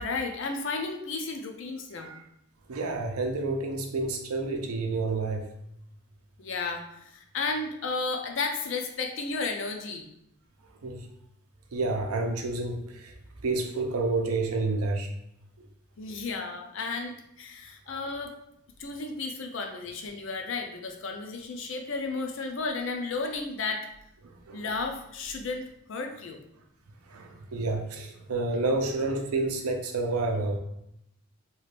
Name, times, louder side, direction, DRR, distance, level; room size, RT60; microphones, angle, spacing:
voice 1, 0.0-2.1 6.4-10.1 16.0-18.3 18.8-23.9 24.5-26.4, left 3 dB, 60° left, 3 dB, 0.5 m, -33 dB
voice 2, 2.7-5.5 10.8-11.1 11.7-13.1 13.4-15.1 17.9-18.0 24.2-24.7 27.1-30.6, right 3 dB, 90° right, 3 dB, 0.6 m, -29 dB
3.0 x 2.4 x 3.2 m, 0.77 s
head